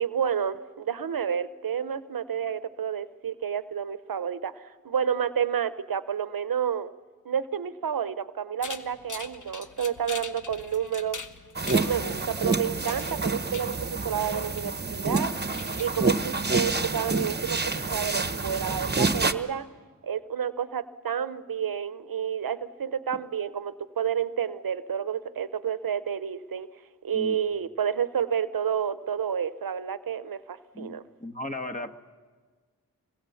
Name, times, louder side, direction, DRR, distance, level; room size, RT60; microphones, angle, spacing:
voice 1, 0.0-6.9 7.2-11.2 11.6-15.3 15.8-19.7 20.0-26.7 27.0-31.0, right 8 dB, 80° right, 14 dB, 0.8 m, -30 dB
sound 1, 8.6-16.8, left 4 dB, 60° left, 1.1 m, -43 dB
sound 2, 11.5-19.3, right 3 dB, 30° right, 1.1 m, -28 dB
voice 2, 30.7-31.9, left 1 dB, 20° left, 6 dB, 1.3 m, -36 dB
25.5 x 22.0 x 7.1 m, 1.5 s
wide cardioid pair, 50°, 35 cm